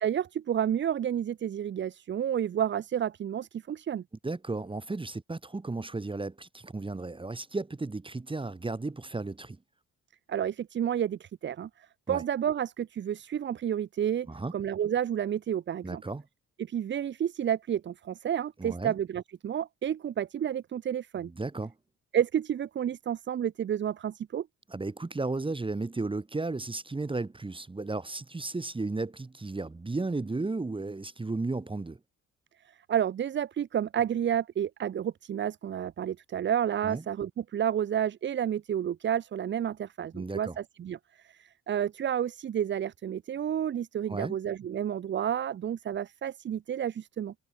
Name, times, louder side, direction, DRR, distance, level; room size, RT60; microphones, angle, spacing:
voice 1, 0.0-4.0 10.3-11.7 12.1-16.0 16.6-21.3 22.1-24.5 32.9-41.0 41.2-47.3, right 9 dB, 40° right, 0.5 m, -30 dB
voice 2, 4.2-9.6 12.1-12.2 14.3-14.5 15.8-16.2 18.6-18.9 21.3-21.7 24.7-32.0 36.8-37.0 40.1-40.6 44.1-44.4, right 3 dB, 15° right, 1.5 m, -34 dB
cardioid pair, 90°, 30 cm